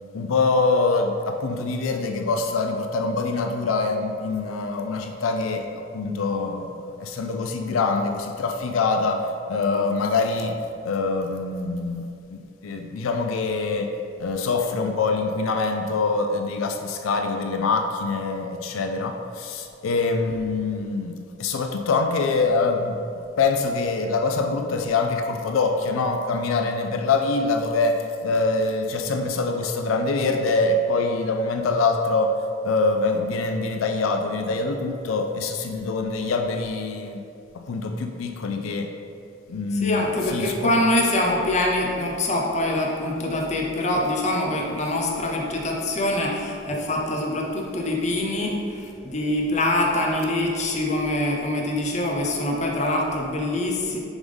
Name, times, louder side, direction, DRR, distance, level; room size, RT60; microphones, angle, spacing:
voice 1, 0.1-5.7 5.9-10.6 10.8-13.9 14.2-23.0 23.4-32.3 32.6-37.2 37.5-38.9 39.5-40.8, left 3 dB, 90° left, 5 dB, 0.4 m, -24 dB
voice 2, 39.7-54.0, left 1 dB, 35° left, -1 dB, 0.8 m, -24 dB
7.1 x 3.6 x 5.3 m, 2.5 s
head